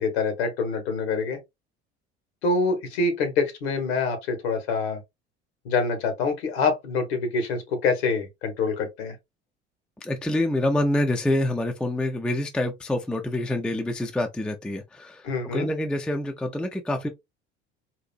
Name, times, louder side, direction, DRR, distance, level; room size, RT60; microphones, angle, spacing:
voice 1, 0.0-1.4 2.4-5.0 5.6-9.2 15.2-15.7, left 4 dB, 65° left, 1.3 m, -25 dB
voice 2, 10.0-15.2 15.5-17.1, left 1 dB, 5° left, 0.4 m, -26 dB
4.0 x 2.5 x 2.4 m
figure-of-eight pair, 65°, 33 cm